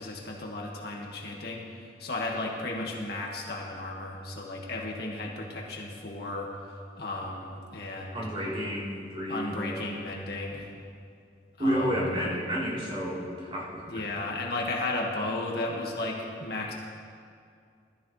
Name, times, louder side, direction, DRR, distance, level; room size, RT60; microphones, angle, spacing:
voice 1, 0.0-1.6 2.0-6.5 7.0-8.3 9.3-10.7 11.6-12.1 13.9-16.7, left 2 dB, 65° left, -1 dB, 2.0 m, -34 dB
voice 2, 8.1-10.0 11.6-14.0, equal, 35° right, -7 dB, 4.0 m, -31 dB
20.5 x 13.5 x 3.4 m, 2.3 s
head